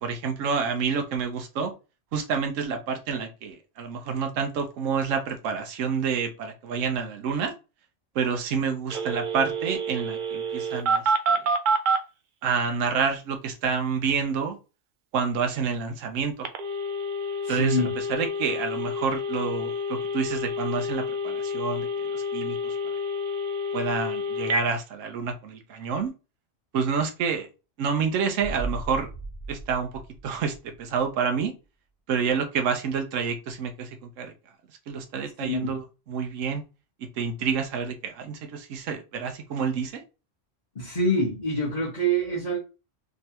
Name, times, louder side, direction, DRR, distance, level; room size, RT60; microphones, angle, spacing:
voice 1, 0.0-1.7 2.1-7.5 8.1-11.1 12.4-14.6 15.1-16.5 17.5-21.9 22.1-22.7 23.7-26.1 26.7-27.5 27.8-29.1 29.5-29.9 30.2-31.5 32.1-34.3 34.9-36.6 37.2-40.0, right 6 dB, 80° right, 1.1 m, -28 dB
Telephone, 8.9-12.0 16.4-24.6, equal, 55° right, 0.6 m, -28 dB
voice 2, 17.4-17.9 35.4-35.8 40.7-42.6, right 1 dB, 40° left, 1.1 m, -26 dB
sound 1, 28.4-31.1 31.4-31.5, right 3 dB, 20° left, 0.9 m, -37 dB
3.8 x 3.1 x 2.8 m
omnidirectional pair, 1.3 m